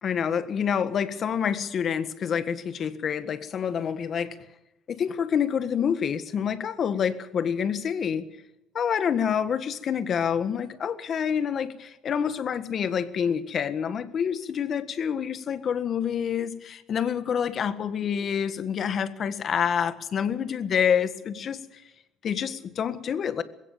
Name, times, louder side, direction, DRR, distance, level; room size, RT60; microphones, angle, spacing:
voice 1, 0.0-4.4 4.9-8.3 8.7-21.8 22.2-23.4, left 7 dB, 45° left, 12 dB, 1.6 m, -27 dB
21.0 x 17.0 x 7.3 m, 0.91 s
cardioid pair, 125°, 0 cm